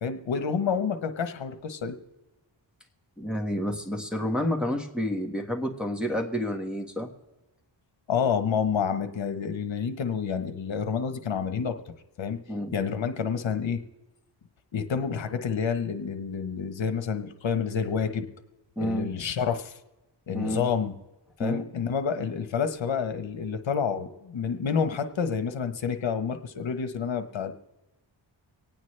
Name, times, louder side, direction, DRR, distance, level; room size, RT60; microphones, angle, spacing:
voice 1, 0.0-1.9 8.1-11.8 12.2-12.4 12.7-13.8 14.7-18.3 18.8-19.7 20.3-20.9 21.4-27.5, left 6 dB, 70° left, 9 dB, 1.1 m, -28 dB
voice 2, 3.2-7.1 12.5-12.8 18.8-19.1 20.3-20.7 21.4-21.6, equal, ahead, 0 dB, 1.5 m, -29 dB
25.5 x 9.1 x 3.3 m, 1.1 s
wide cardioid pair, 95°, 48 cm